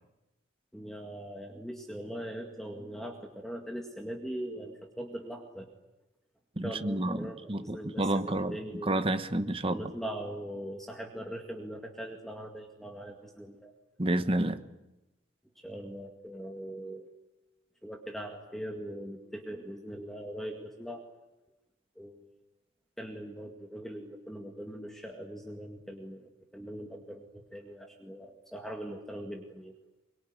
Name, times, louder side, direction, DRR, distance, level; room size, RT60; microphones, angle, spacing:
voice 1, 0.7-5.7 6.6-9.0 9.7-13.7 15.6-17.1 17.8-21.0 22.0-22.2 23.0-29.7, right 1 dB, ahead, 2 dB, 2.0 m, -41 dB
voice 2, 6.6-8.6 8.8-9.8 14.0-14.6, right 1 dB, 25° right, 10 dB, 1.1 m, -30 dB
23.5 x 22.5 x 9.6 m, 0.98 s
head